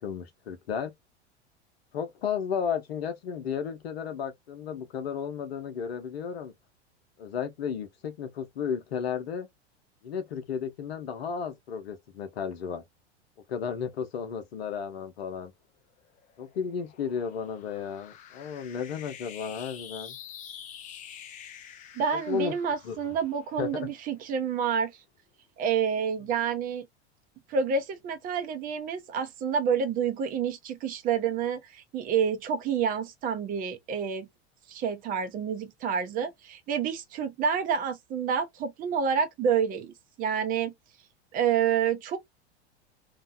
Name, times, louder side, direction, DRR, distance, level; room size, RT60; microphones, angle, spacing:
voice 1, 0.0-0.9 1.9-6.5 7.2-9.5 10.0-12.8 13.5-15.5 16.4-20.2 22.3-22.5 22.8-23.1 23.6-23.9, left 7 dB, 65° left, 0.8 m, -33 dB
sound 1, 16.0-24.6, left 9 dB, 25° left, 0.4 m, -47 dB
voice 2, 21.9-24.9 25.6-26.9 27.5-34.3 34.7-40.7 41.3-42.2, right 7 dB, 25° right, 0.5 m, -28 dB
2.7 x 2.1 x 2.5 m
figure-of-eight pair, 85°, 34 cm